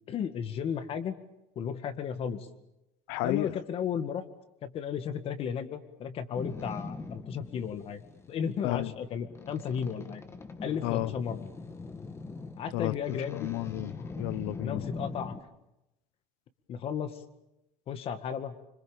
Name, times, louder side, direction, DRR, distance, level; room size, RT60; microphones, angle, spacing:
voice 1, 0.1-1.1 1.6-2.5 3.2-4.2 4.6-8.0 8.3-10.2 10.6-11.5 12.6-13.5 14.6-15.4 16.7-17.2 17.9-18.6, left 7 dB, 40° left, 2.0 m, -34 dB
voice 2, 3.1-3.5 8.6-8.9 10.8-11.1 12.7-12.9 13.3-14.8, left 18 dB, 85° left, 1.0 m, -32 dB
Boat Water vehicle, 6.3-15.4, left 3 dB, 15° left, 1.7 m, -42 dB
26.0 x 26.0 x 7.2 m
cardioid pair, 160°, 16 cm